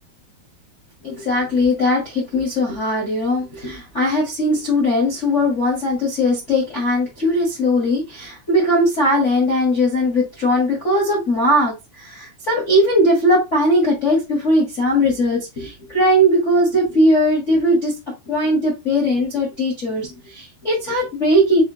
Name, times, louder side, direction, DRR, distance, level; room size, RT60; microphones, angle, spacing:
voice 1, 1.0-18.0 18.3-21.6, equal, 80° left, -3 dB, 0.6 m, -19 dB
6.3 x 2.7 x 2.9 m, 0.24 s
omnidirectional pair, 4.3 m